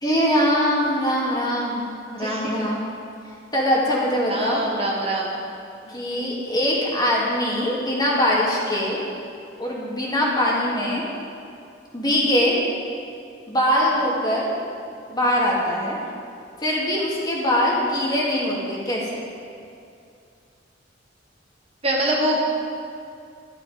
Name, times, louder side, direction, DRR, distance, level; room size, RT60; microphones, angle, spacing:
voice 1, 0.0-2.8 3.5-4.6 5.9-9.0 9.6-11.0 11.9-12.6 13.5-14.5 15.1-16.0 16.6-19.2, equal, 20° left, -4 dB, 2.5 m, -22 dB
voice 2, 4.3-5.4 5.9-6.0 21.8-22.4, right 1 dB, 30° right, -2 dB, 1.6 m, -24 dB
12.0 x 12.0 x 5.2 m, 2.5 s
head